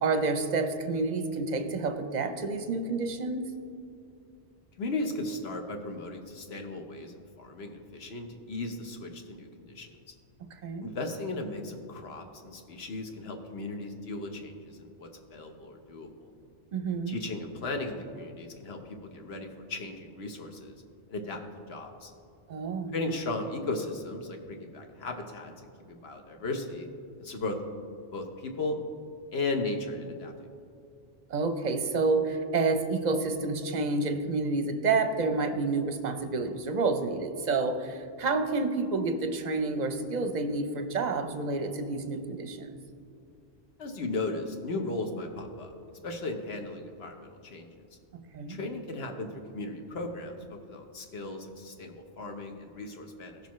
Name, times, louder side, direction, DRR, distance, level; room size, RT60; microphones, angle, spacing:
voice 1, 0.0-3.4 10.4-10.9 16.7-17.2 22.5-23.1 31.3-42.8 48.1-48.6, right 3 dB, 45° right, 7 dB, 0.7 m, -29 dB
voice 2, 4.8-9.9 10.8-16.3 17.1-20.7 21.1-21.4 21.7-22.1 22.9-26.9 27.2-27.6 28.1-28.8 29.3-30.3 43.8-45.7 46.0-47.7 48.5-53.4, left 2 dB, 65° left, 4 dB, 1.2 m, -36 dB
16.5 x 6.6 x 3.1 m, 2.5 s
omnidirectional pair, 1.2 m